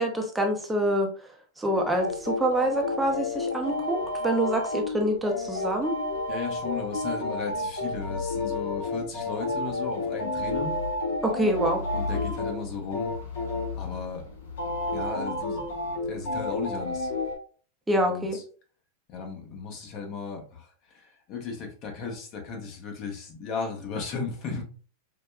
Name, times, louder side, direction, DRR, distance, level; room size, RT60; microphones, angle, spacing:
voice 1, 0.0-6.0 11.2-11.8 17.9-18.4, right 1 dB, 10° right, 1 dB, 0.6 m, -26 dB
sound 1, 1.7-17.4, left 2 dB, 75° left, 1.0 m, -31 dB
voice 2, 6.3-10.8 11.9-13.1 13.7-14.3 14.9-15.7 16.0-17.1 17.9-18.4 19.1-24.6, left 5 dB, 45° left, 2 dB, 1.0 m, -35 dB
4.9 x 2.2 x 2.2 m, 0.42 s
hypercardioid pair, 100°, 0 cm